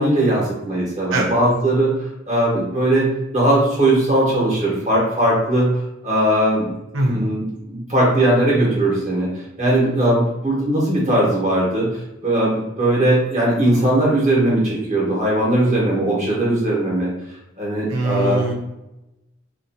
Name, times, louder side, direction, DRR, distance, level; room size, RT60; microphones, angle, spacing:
voice 1, 0.0-3.1 3.3-5.7 6.0-6.7 7.0-9.3 9.6-11.9 12.2-17.1 17.6-18.4, right 1 dB, 40° right, -5 dB, 1.2 m, -19 dB
voice 2, 17.9-18.5, right 2 dB, 80° right, 0 dB, 0.7 m, -21 dB
2.7 x 2.4 x 2.7 m, 0.93 s
head